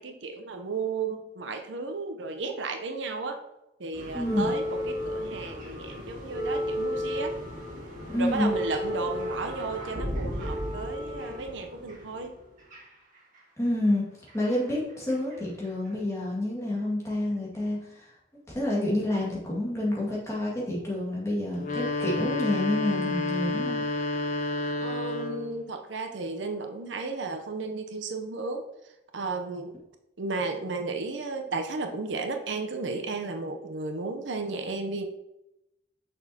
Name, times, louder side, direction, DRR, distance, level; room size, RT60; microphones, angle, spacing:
voice 1, 0.0-3.4 3.8-7.4 8.2-12.4 24.8-28.7 29.1-29.8 30.2-35.1, right 3 dB, 80° right, 5 dB, 0.7 m, -33 dB
sound 1, 3.9-13.4 14.3-15.4 15.6-15.9 16.8-16.9, equal, 40° right, 2.0 m, -34 dB
voice 2, 4.1-4.5 8.1-8.5 13.6-14.0 14.3-18.1 18.5-23.8, left 1 dB, 15° left, -5 dB, 1.9 m, -28 dB
sound 2, 21.5-25.6, left 2 dB, 40° left, 0.8 m, -30 dB
6.8 x 6.2 x 2.8 m, 0.89 s
head